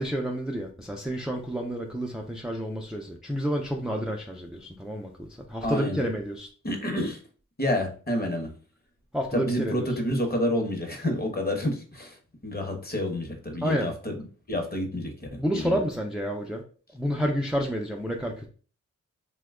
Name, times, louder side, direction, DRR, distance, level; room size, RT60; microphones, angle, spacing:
voice 1, 0.0-6.5 9.1-10.0 13.6-13.9 15.3-16.6 16.9-18.5, equal, ahead, 0 dB, 0.4 m, -30 dB
voice 2, 5.6-6.0 6.6-7.2 7.6-8.5 9.3-12.2 12.4-15.8, left 1 dB, 30° left, 3 dB, 0.9 m, -29 dB
2.8 x 2.2 x 3.5 m, 0.39 s
cardioid pair, 70°, 32 cm